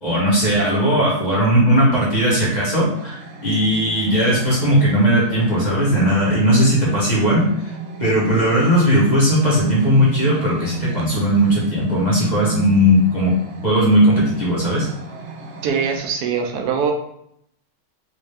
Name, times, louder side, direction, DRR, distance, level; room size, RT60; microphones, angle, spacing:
voice 1, 0.0-7.7 8.0-13.3 13.6-14.9, equal, 30° left, -6 dB, 1.1 m, -17 dB
sound 1, 3.0-16.0, right 3 dB, 60° right, 0.7 m, -33 dB
voice 2, 15.6-16.9, right 6 dB, 90° right, 3 dB, 1.2 m, -22 dB
3.5 x 2.6 x 3.3 m, 0.72 s
omnidirectional pair, 1.6 m